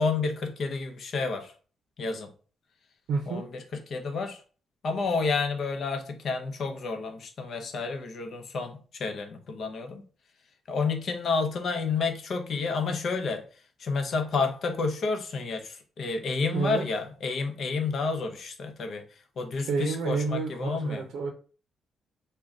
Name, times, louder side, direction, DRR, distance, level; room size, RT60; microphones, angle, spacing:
voice 1, 0.0-1.5 2.0-2.3 3.3-3.6 3.9-4.4 4.8-10.0 10.7-13.4 13.8-19.0 19.4-21.0, left 4 dB, 55° left, 5 dB, 0.7 m, -30 dB
voice 2, 3.1-3.5 16.5-16.9 19.7-21.3, right 4 dB, 80° right, 3 dB, 0.5 m, -29 dB
3.7 x 2.2 x 3.6 m, 0.39 s
cardioid pair, 120°, 0 cm